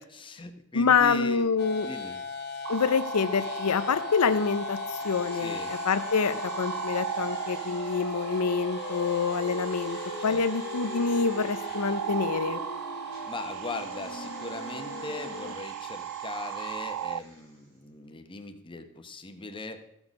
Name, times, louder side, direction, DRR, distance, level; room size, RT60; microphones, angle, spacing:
voice 1, 0.0-1.5 1.8-2.2 5.3-5.7 10.3-10.4 13.3-19.8, left 2 dB, 25° left, 6 dB, 0.9 m, -39 dB
voice 2, 0.7-1.9 2.7-12.6, left 5 dB, 85° left, 12 dB, 0.6 m, -26 dB
sound 1, 1.6-15.5, left 4 dB, 50° left, 0.9 m, -38 dB
sound 2, 2.6-17.2, right 11 dB, 85° right, 0.3 m, -37 dB
sound 3, 5.0-12.6 13.1-17.8 18.0-18.1, right 2 dB, 60° right, 3.5 m, -50 dB
14.5 x 6.3 x 5.3 m, 0.79 s
head